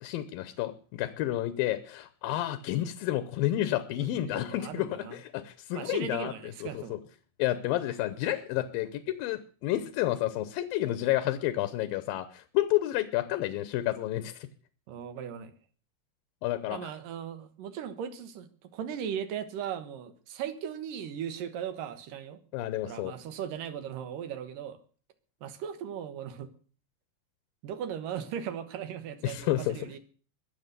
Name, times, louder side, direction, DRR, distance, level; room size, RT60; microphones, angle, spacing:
voice 1, 0.0-7.0 7.4-14.5 16.4-16.9 22.5-23.1 29.2-29.8, left 14 dB, 80° left, 13 dB, 2.6 m, -30 dB
voice 2, 4.0-5.2 5.7-7.0 14.9-15.5 16.7-22.4 22.8-24.8 25.4-26.5 27.6-30.0, right 8 dB, 70° right, 11 dB, 2.8 m, -38 dB
22.0 x 7.3 x 6.7 m, 0.42 s
omnidirectional pair, 4.1 m